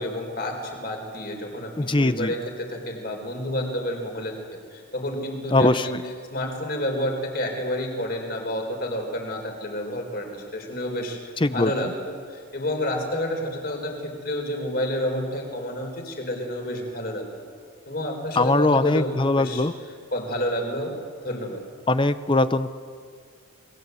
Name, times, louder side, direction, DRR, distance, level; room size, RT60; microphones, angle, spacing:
voice 1, 0.0-4.4 4.7-6.0 6.3-11.2 11.5-17.4 17.9-19.1 19.4-19.6 20.1-20.9 21.2-21.6, left 1 dB, 45° left, 3 dB, 4.7 m, -29 dB
voice 2, 1.8-2.3 5.5-6.0 11.4-11.9 18.4-19.7 21.9-22.7, left 2 dB, 25° left, 12 dB, 0.7 m, -21 dB
29.0 x 21.5 x 8.3 m, 2.1 s
head